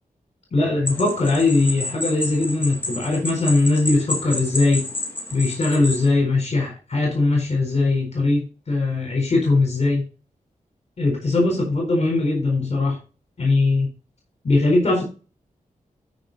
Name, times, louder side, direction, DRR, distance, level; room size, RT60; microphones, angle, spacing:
voice 1, 0.5-4.8 5.3-10.0 11.0-13.0 13.4-13.9 14.4-15.0, left 2 dB, 50° left, 4.2 m, -20 dB
sound 1, 0.9-6.1, left 2 dB, 15° left, 3.1 m, -30 dB
13.0 x 5.4 x 4.0 m
wide cardioid pair, 130°, 14 cm